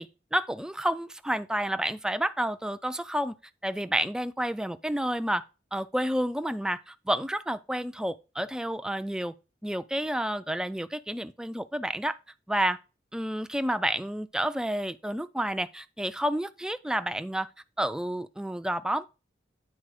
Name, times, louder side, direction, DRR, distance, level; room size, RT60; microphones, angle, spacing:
voice 1, 0.0-3.3 3.6-5.4 5.7-9.3 9.6-12.2 12.5-12.8 13.1-17.5 17.8-19.1, right 1 dB, 5° right, 0.3 m, -30 dB
9.4 x 4.3 x 4.8 m
head